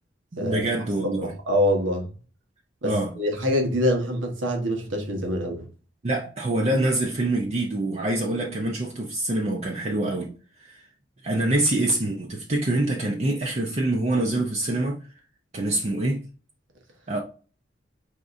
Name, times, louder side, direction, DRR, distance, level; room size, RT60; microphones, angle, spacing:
voice 1, 0.3-1.3 2.8-3.1 6.0-10.3 10.6-10.8 11.2-15.0 15.5-16.2 17.1-17.2, right 1 dB, 35° right, 0.6 m, -25 dB
voice 2, 1.0-2.1 2.8-5.6, equal, 80° right, 1.2 m, -25 dB
4.9 x 3.7 x 2.6 m
head